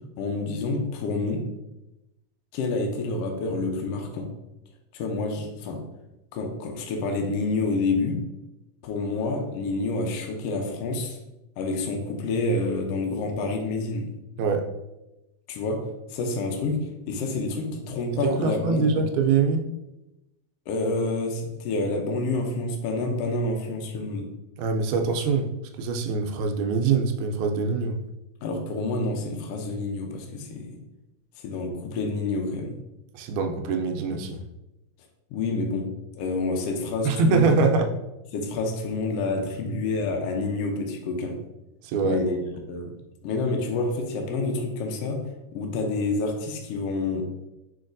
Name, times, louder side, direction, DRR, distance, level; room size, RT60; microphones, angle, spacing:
voice 1, 0.2-1.5 2.5-4.3 4.9-5.8 6.3-8.2 8.8-11.2 11.6-14.1 15.5-19.0 20.7-24.3 28.4-30.7 31.4-32.7 35.3-35.9 36.1-37.6 38.3-41.4 42.0-42.9 43.2-45.2 45.5-47.3, left 3 dB, 90° left, 3 dB, 1.4 m, -28 dB
voice 2, 18.2-19.7 24.6-25.5 25.8-28.0 33.1-34.4 37.0-37.9 41.8-42.2, right 4 dB, 80° right, 4 dB, 1.9 m, -24 dB
5.1 x 4.0 x 2.5 m, 0.96 s
omnidirectional pair, 3.5 m